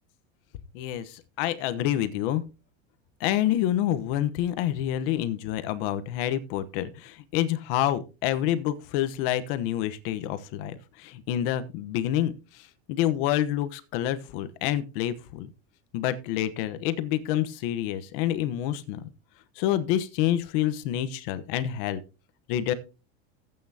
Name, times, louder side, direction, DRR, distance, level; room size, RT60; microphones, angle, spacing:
voice 1, 0.7-2.4 3.2-15.5 15.9-19.0 19.6-22.0 22.5-22.7, left 12 dB, 55° left, 12 dB, 1.1 m, -28 dB
15.5 x 8.8 x 2.8 m, 0.31 s
supercardioid pair, 160°, 33 cm